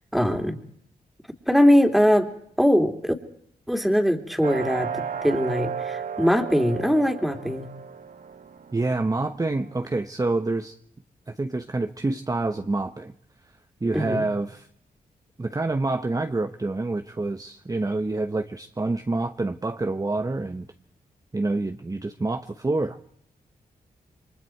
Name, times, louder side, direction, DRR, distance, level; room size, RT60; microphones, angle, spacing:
voice 1, 0.1-0.6 1.5-2.3 2.6-3.1 3.7-7.7 13.9-14.3, equal, ahead, 5 dB, 3.0 m, -21 dB
sound 1, 4.4-10.0, right 7 dB, 55° right, 1.7 m, -34 dB
voice 2, 8.7-10.8 11.3-13.1 13.8-14.7 15.4-20.7 21.3-23.0, right 2 dB, 20° right, 7 dB, 1.0 m, -27 dB
28.5 x 23.0 x 4.6 m, 0.66 s
cardioid pair, 65°, 16 cm